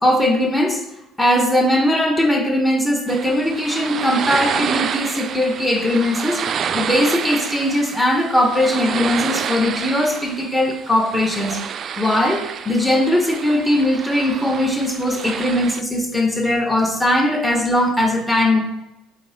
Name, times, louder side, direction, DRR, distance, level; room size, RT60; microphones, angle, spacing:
voice 1, 0.0-0.8 1.2-11.6 12.0-18.6, left 1 dB, 10° left, 1 dB, 1.6 m, -19 dB
sound 1, 3.1-15.8, right 7 dB, 45° right, 0.4 m, -28 dB
8.0 x 3.8 x 3.7 m, 0.93 s
hypercardioid pair, 75°, 0 cm